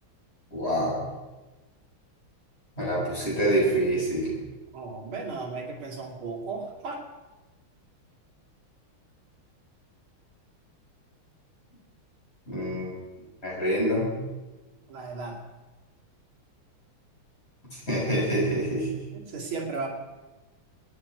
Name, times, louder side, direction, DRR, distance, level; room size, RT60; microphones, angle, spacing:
voice 1, 0.5-1.0 2.8-4.3 12.5-12.9 13.4-14.2 17.9-19.0, right 1 dB, 30° left, -6 dB, 7.5 m, -26 dB
voice 2, 4.7-7.0 14.9-15.4 19.1-19.9, right 4 dB, 80° right, 0 dB, 3.3 m, -35 dB
26.0 x 9.7 x 5.0 m, 1.2 s
omnidirectional pair, 2.3 m